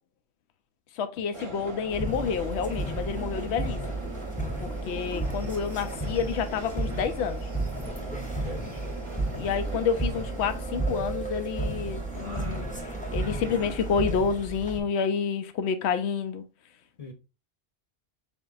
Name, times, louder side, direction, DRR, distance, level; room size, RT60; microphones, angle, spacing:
voice 1, 1.0-3.8 4.6-7.5 9.4-12.7 13.1-16.4, left 6 dB, 85° left, 0.8 m, -29 dB
Subway metro underground, 1.3-14.1, right 3 dB, 30° right, 0.7 m, -40 dB
sound 1, 1.9-14.8, right 2 dB, 10° left, 0.6 m, -33 dB
voice 2, 8.1-8.9 17.0-17.1, left 1 dB, 40° left, 0.8 m, -43 dB
4.3 x 3.5 x 2.4 m
omnidirectional pair, 1.1 m